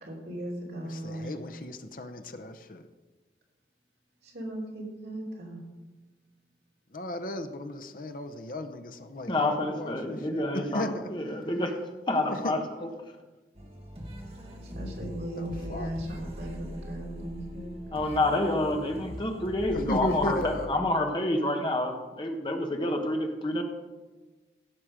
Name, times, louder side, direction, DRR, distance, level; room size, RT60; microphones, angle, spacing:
voice 1, 0.0-1.3 4.2-5.6 14.7-17.7, right 1 dB, 60° right, -2 dB, 3.0 m, -37 dB
voice 2, 0.8-2.8 6.9-11.1 12.3-12.7 15.4-15.9 19.7-20.7, left 1 dB, 50° left, 8 dB, 0.7 m, -35 dB
voice 3, 9.3-11.7 12.1-12.9 17.9-23.6, left 1 dB, 25° left, 3 dB, 1.2 m, -28 dB
sound 1, 13.5-20.7, equal, 35° right, 1.4 m, -41 dB
16.0 x 6.1 x 5.0 m, 1.2 s
head